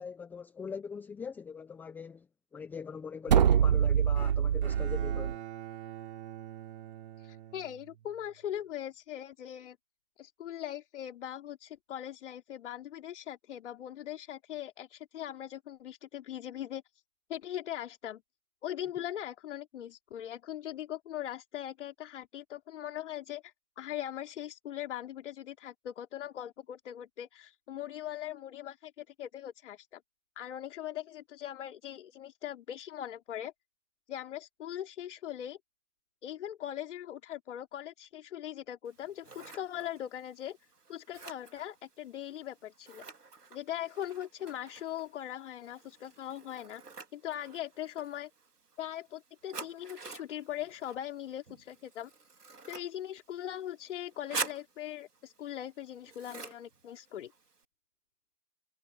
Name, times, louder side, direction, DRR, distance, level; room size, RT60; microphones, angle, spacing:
voice 1, 0.0-2.3 2.5-5.4, left 6 dB, 5° left, 0.7 m, -42 dB
sound 1, 3.3-5.4, right 8 dB, 30° right, 0.5 m, -25 dB
Bowed string instrument, 4.2-8.4, right 12 dB, 45° right, 5.5 m, -45 dB
voice 2, 7.2-9.8 10.2-16.8 17.3-18.2 18.6-30.0 30.4-33.5 34.1-35.6 36.2-40.6 40.9-43.0 43.5-46.8 47.1-48.3 48.8-52.1 52.7-57.3, left 11 dB, 50° left, 3.3 m, -40 dB
Scissors, 38.9-57.6, right 4 dB, 85° right, 4.7 m, -47 dB
figure-of-eight pair, 135°, 46 cm